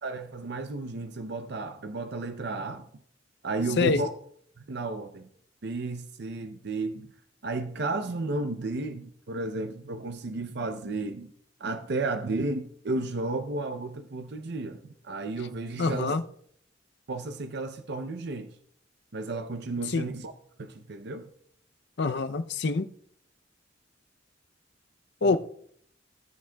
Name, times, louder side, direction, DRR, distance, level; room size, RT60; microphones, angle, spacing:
voice 1, 0.0-2.8 3.4-4.1 4.7-5.3 5.6-7.1 7.4-11.3 11.6-16.1 17.1-18.5 19.1-20.3 20.6-21.2 25.2-25.4, right 3 dB, 60° right, 0.6 m, -33 dB
voice 2, 15.8-16.2 19.9-20.1 22.0-22.8 25.2-25.4, left 4 dB, 60° left, 0.6 m, -25 dB
17.0 x 7.6 x 2.3 m
head